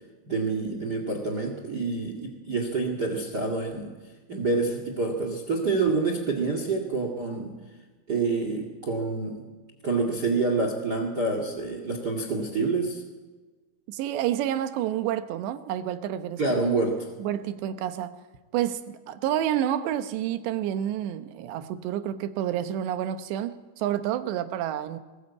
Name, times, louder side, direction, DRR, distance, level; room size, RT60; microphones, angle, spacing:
voice 1, 0.3-3.9 4.3-7.5 8.1-9.4 9.8-13.0 16.4-17.1, right 3 dB, 35° right, 5 dB, 1.8 m, -27 dB
voice 2, 13.9-16.4 17.2-18.1 18.5-25.0, right 11 dB, 90° right, 10 dB, 3.3 m, -29 dB
20.0 x 20.0 x 8.4 m, 1.3 s
omnidirectional pair, 4.9 m